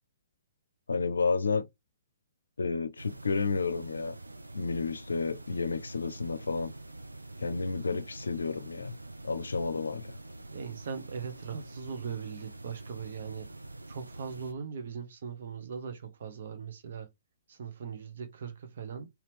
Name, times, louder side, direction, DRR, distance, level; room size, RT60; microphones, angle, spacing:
voice 1, 0.9-1.7 2.6-4.2 4.5-6.7 7.4-8.9 9.2-10.1, left 4 dB, 70° left, 0.6 m, -31 dB
sound 1, 3.0-14.5, right 2 dB, 80° right, 0.6 m, -46 dB
voice 2, 10.5-13.5 13.9-17.1 17.5-19.1, right 6 dB, 50° right, 1.0 m, -40 dB
4.1 x 2.8 x 3.2 m
figure-of-eight pair, 125°, 0 cm